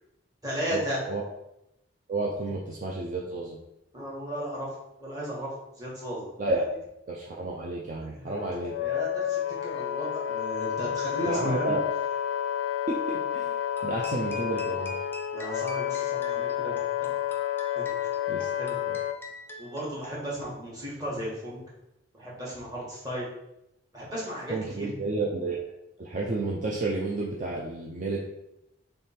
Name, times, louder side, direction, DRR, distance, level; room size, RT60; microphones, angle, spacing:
voice 1, 0.4-1.0 3.9-5.5 5.8-6.3 8.0-8.4 8.8-11.8 15.3-17.1 17.7-17.8 18.6-18.7 19.6-21.6 22.1-23.3 23.9-24.9, equal, 20° right, -6 dB, 1.4 m, -35 dB
voice 2, 2.1-3.6 6.4-6.6 7.1-8.8 11.2-11.8 12.9-15.0 18.3-18.5 18.9-19.0 24.5-25.6 26.0-28.2, right 2 dB, 45° right, -2 dB, 0.5 m, -31 dB
Wind instrument woodwind instrument, 8.3-19.2, left 10 dB, 75° left, 0.3 m, -30 dB
sound 1, 13.8-20.6, equal, 10° left, 0.5 m, -45 dB
3.4 x 3.2 x 4.4 m, 0.85 s
head